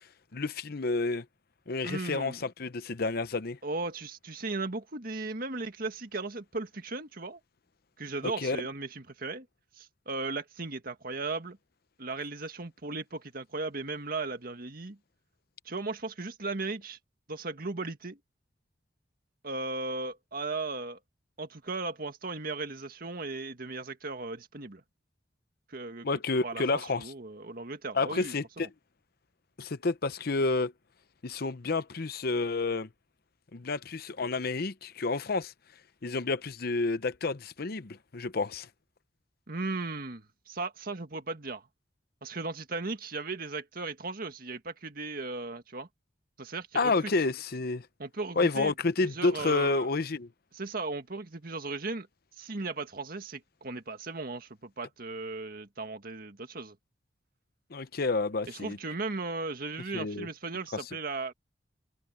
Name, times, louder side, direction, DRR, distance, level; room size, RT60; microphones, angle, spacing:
voice 1, 0.3-1.2 1.7-3.6 8.2-8.6 26.0-27.1 27.9-28.7 29.6-30.7 31.2-32.9 33.5-35.5 36.0-38.7 46.7-47.9 48.4-50.3 57.7-58.8 59.9-60.3 60.7-60.8, left 3 dB, 55° left, 0.8 m, -30 dB
voice 2, 1.8-2.4 3.6-7.4 8.0-9.5 9.8-11.6 12.0-15.0 15.6-17.0 17.3-18.2 19.4-21.0 21.4-24.8 25.7-26.1 26.4-28.7 39.5-41.7 42.2-45.9 46.4-46.9 48.0-48.7 49.0-49.9 50.5-52.1 52.4-56.7 58.5-61.3, right 3 dB, 55° right, 1.9 m, -36 dB
head